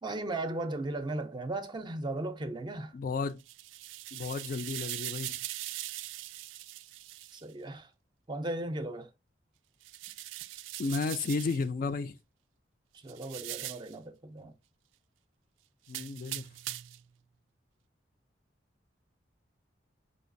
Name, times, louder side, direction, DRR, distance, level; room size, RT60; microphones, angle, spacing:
voice 1, 0.0-2.9 7.3-7.9 8.3-9.1 12.9-14.5, right 2 dB, 25° right, 0.5 m, -36 dB
voice 2, 2.9-3.4 4.1-5.4 10.8-12.2 15.9-16.5, left 4 dB, 45° left, 0.3 m, -33 dB
sound 1, 3.3-7.4 9.8-11.6 13.1-13.9 15.9-17.0, right 15 dB, 85° right, 0.3 m, -41 dB
5.0 x 2.3 x 2.5 m
head